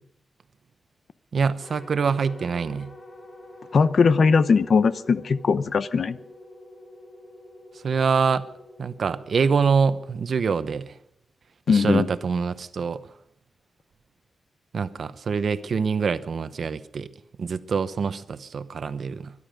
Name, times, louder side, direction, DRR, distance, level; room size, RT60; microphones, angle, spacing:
voice 1, 1.3-2.9 7.8-8.4 8.8-10.9 11.7-13.0 14.7-17.1 17.4-19.3, right 5 dB, 65° right, 12 dB, 0.9 m, -25 dB
sound 1, 1.6-10.9, left 1 dB, 40° left, 2.9 m, -47 dB
voice 2, 3.7-6.2 11.7-12.1, left 5 dB, 60° left, 14 dB, 0.7 m, -20 dB
23.5 x 11.0 x 5.1 m, 0.74 s
wide cardioid pair, 100°, 0 cm